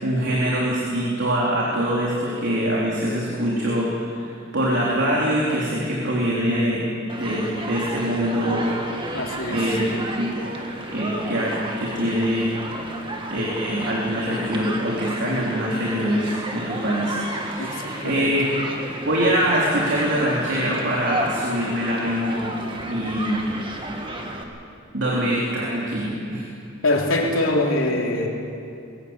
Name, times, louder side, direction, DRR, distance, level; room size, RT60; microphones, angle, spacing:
voice 1, 0.0-6.8 7.1-8.8 9.5-10.5 10.9-12.5 13.3-18.5 19.1-22.5 22.8-23.5 24.9-26.4, equal, 60° right, -5 dB, 3.6 m, -24 dB
Human group actions, 7.1-24.4, right 1 dB, 25° right, 2.0 m, -32 dB
voice 2, 9.1-9.8 17.6-18.3 26.8-28.3, left 2 dB, 70° left, 0 dB, 3.3 m, -23 dB
22.0 x 17.5 x 8.2 m, 2.5 s
head